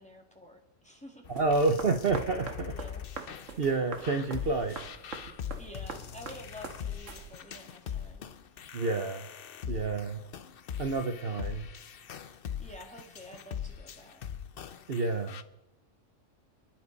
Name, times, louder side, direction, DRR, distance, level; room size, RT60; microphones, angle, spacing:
voice 1, 0.0-1.2 2.7-3.0 5.6-8.5 12.6-14.2, equal, 5° left, 1 dB, 2.3 m, -49 dB
sound 1, 1.2-15.4, left 8 dB, 55° left, 0.8 m, -42 dB
voice 2, 1.3-2.7 3.6-4.8 8.7-9.3 9.7-10.2 10.8-11.7 14.9-15.4, right 3 dB, 50° right, 5 dB, 1.1 m, -29 dB
sound 2, 1.4-7.6, right 4 dB, 75° right, 1.7 m, -44 dB
30.0 x 11.0 x 4.1 m, 0.93 s
omnidirectional pair, 1.3 m